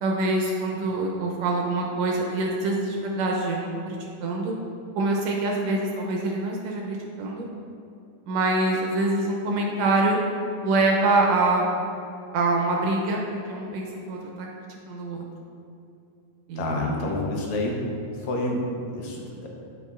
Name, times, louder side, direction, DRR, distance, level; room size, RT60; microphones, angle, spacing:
voice 1, 0.0-4.5 5.0-7.5 8.3-10.2 10.6-11.7 12.3-14.5 14.9-15.2 16.5-16.8, right 2 dB, 75° right, 0 dB, 1.7 m, -25 dB
voice 2, 16.6-17.9 18.2-19.5, left 2 dB, 75° left, -1 dB, 2.1 m, -28 dB
7.9 x 7.1 x 2.4 m, 2.6 s
omnidirectional pair, 3.4 m